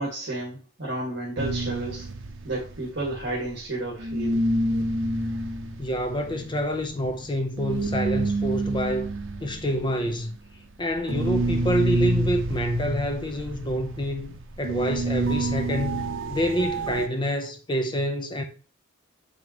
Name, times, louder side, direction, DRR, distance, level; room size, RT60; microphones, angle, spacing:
voice 1, 0.0-2.1 2.4-4.4, right 2 dB, 60° right, 2.1 m, -31 dB
sound 1, 1.4-3.7 4.0-17.1, right 1 dB, 75° right, 0.8 m, -28 dB
voice 2, 5.8-9.1 9.4-10.4 10.8-18.4, equal, 25° left, 0.8 m, -27 dB
7.1 x 5.3 x 3.1 m
head